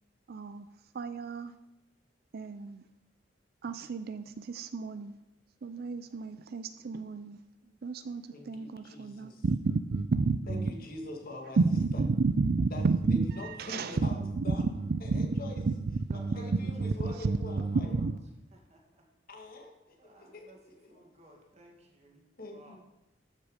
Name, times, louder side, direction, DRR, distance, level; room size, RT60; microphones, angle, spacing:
voice 1, 0.3-0.7 0.9-1.5 2.3-2.8 3.6-5.1 5.6-7.4 7.8-10.8 11.6-18.2, right 4 dB, 55° right, 11 dB, 0.4 m, -31 dB
voice 2, 8.3-9.4 10.5-11.6 11.9-12.0 12.7-14.6 15.0-15.6 16.3-17.9 19.3-21.1 22.4-22.8, left 2 dB, 50° left, 2 dB, 1.9 m, -44 dB
voice 3, 16.1-18.2 18.5-19.0 20.0-22.2 22.5-22.8, right 1 dB, 35° right, 0 dB, 2.3 m, -56 dB
13.5 x 6.4 x 5.0 m, 0.92 s
head